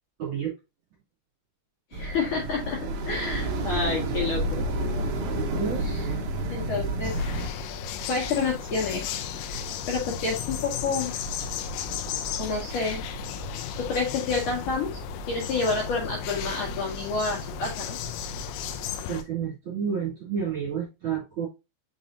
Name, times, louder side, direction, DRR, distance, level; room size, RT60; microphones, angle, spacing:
voice 1, 0.2-0.5 5.6-6.2 19.1-21.5, right 7 dB, 35° right, -5 dB, 2.7 m, -30 dB
voice 2, 1.9-2.8 3.1-4.6 5.8-6.0 6.5-7.1 8.1-9.1 9.9-11.1 12.4-13.0 13.8-14.9 15.3-18.0, left 4 dB, 55° left, -3 dB, 2.7 m, -29 dB
sound 1, 1.9-7.5, right 1 dB, 80° right, 1.7 m, -29 dB
sound 2, 7.0-19.2, left 6 dB, 85° left, 3.0 m, -34 dB
6.5 x 5.5 x 2.6 m, 0.25 s
omnidirectional pair, 5.1 m